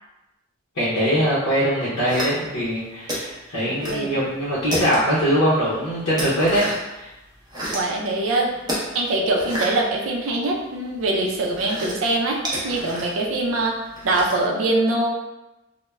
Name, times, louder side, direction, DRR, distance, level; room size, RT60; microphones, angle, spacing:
voice 1, 0.8-6.6 6.9-7.1, equal, 70° left, -8 dB, 0.6 m, -22 dB
sound 1, 2.1-2.7 3.1-4.1 4.3-5.3 5.7-6.9 7.3-7.9 8.6-10.6 11.0-14.4, right 1 dB, 20° right, 0.5 m, -30 dB
voice 2, 7.7-12.4 12.6-13.8 14.0-15.1, right 2 dB, 90° right, -1 dB, 0.5 m, -23 dB
2.2 x 2.1 x 3.1 m, 1.0 s
head